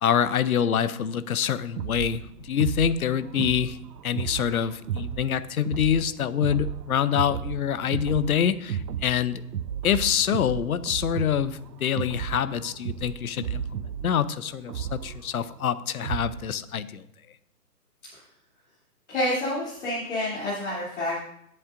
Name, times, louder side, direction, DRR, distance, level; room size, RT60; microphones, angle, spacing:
voice 1, 0.0-2.2 2.5-3.8 4.0-9.4 9.8-13.6 14.0-17.0, left 9 dB, 60° left, 15 dB, 0.7 m, -26 dB
sound 1, 1.8-16.5, right 9 dB, 85° right, 0.6 m, -34 dB
voice 2, 19.1-21.2, left 1 dB, 45° left, -8 dB, 2.9 m, -28 dB
17.5 x 7.7 x 2.5 m, 0.74 s
hypercardioid pair, 155°, 49 cm